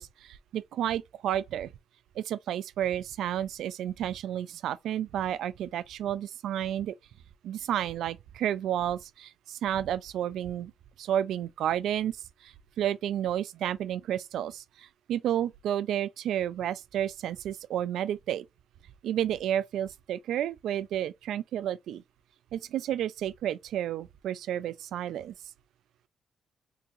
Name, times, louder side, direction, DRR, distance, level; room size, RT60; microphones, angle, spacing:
voice 1, 0.0-1.7 2.2-7.0 7.4-10.7 11.0-12.2 12.4-18.4 19.0-22.0 22.5-25.3, right 10 dB, 85° right, 0.3 m, -31 dB
3.8 x 2.8 x 2.6 m
cardioid pair, 140°, 0 cm